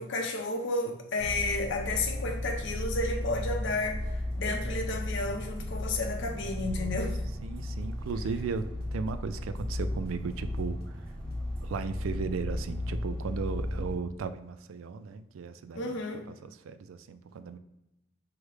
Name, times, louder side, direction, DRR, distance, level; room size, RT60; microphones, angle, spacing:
voice 1, 0.0-4.0 4.3-7.2 15.7-16.3, left 2 dB, 65° left, 0.7 m, -32 dB
sound 1, 1.2-13.9, left 1 dB, 5° left, 0.6 m, -35 dB
sound 2, 3.7-12.3, equal, 50° right, 1.0 m, -50 dB
voice 2, 6.7-7.1 7.4-11.0 11.6-16.0 16.3-17.6, right 5 dB, 85° right, 0.4 m, -36 dB
4.9 x 2.1 x 4.7 m
head